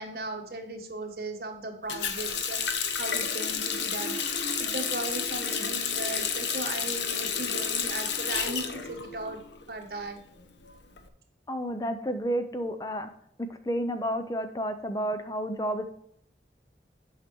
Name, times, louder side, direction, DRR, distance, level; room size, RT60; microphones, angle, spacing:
voice 1, 0.0-9.4 9.7-10.2, right 2 dB, 60° right, 4 dB, 1.3 m, -37 dB
Water tap faucet, 1.9-9.6 9.9-11.0, left 6 dB, 90° left, 1.0 m, -31 dB
voice 2, 11.5-13.1 13.6-15.8, equal, 20° left, 9 dB, 0.5 m, -30 dB
8.3 x 5.7 x 4.5 m, 0.69 s
head